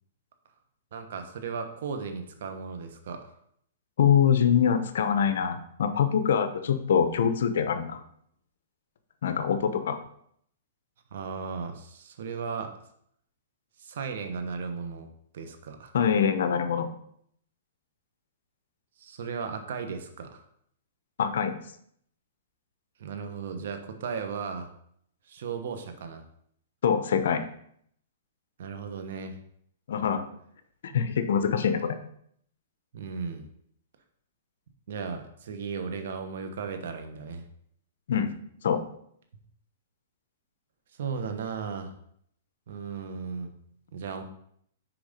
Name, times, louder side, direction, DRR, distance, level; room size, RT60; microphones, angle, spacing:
voice 1, 0.9-3.3 11.1-12.7 13.8-15.1 15.3-15.9 19.0-20.4 23.0-24.7 25.3-26.2 28.6-29.4 30.9-31.0 32.9-33.5 34.9-37.4 41.0-41.9 42.7-43.5 43.9-44.2, right 5 dB, 65° right, 7 dB, 1.1 m, -36 dB
voice 2, 4.0-8.0 9.2-10.0 15.9-16.9 21.2-21.6 26.8-27.4 29.9-30.2 30.8-32.0 38.1-38.3 38.6-38.8, left 7 dB, 70° left, 10 dB, 0.8 m, -24 dB
6.0 x 4.9 x 5.2 m, 0.68 s
hypercardioid pair, 155°, 0 cm